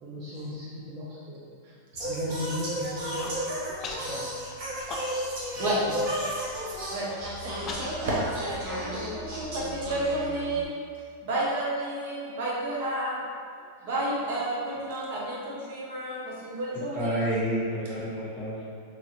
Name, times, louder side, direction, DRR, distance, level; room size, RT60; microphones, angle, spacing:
voice 1, 0.0-1.5 2.0-3.4 3.8-4.2 5.5-6.0, equal, 30° right, -9 dB, 0.6 m, -37 dB
Singing, 1.9-10.6, equal, 50° right, 1.0 m, -34 dB
Human voice, 3.2-3.4 3.8-4.1 4.5-5.4 5.7-5.8 6.2-6.5 7.1-9.9, left 3 dB, 30° left, 0.3 m, -40 dB
voice 2, 6.9-10.7 11.2-13.2 13.8-17.1, right 1 dB, 70° right, -5 dB, 0.7 m, -31 dB
voice 3, 16.7-18.6, equal, 10° right, -11 dB, 1.1 m, -30 dB
3.0 x 2.4 x 2.9 m, 2.3 s
supercardioid pair, 145°, 0 cm